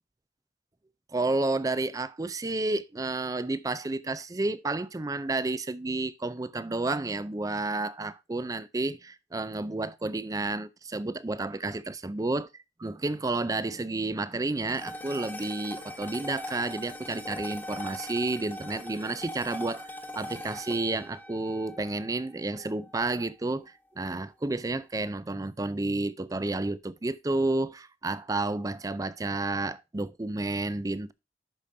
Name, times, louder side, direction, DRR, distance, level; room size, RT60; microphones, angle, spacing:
voice 1, 1.1-12.5 12.8-19.9 20.2-31.1, right 2 dB, 20° right, 0.4 m, -31 dB
sound 1, 14.7-23.2, left 1 dB, 10° left, 1.2 m, -41 dB
11.5 x 5.1 x 2.7 m
head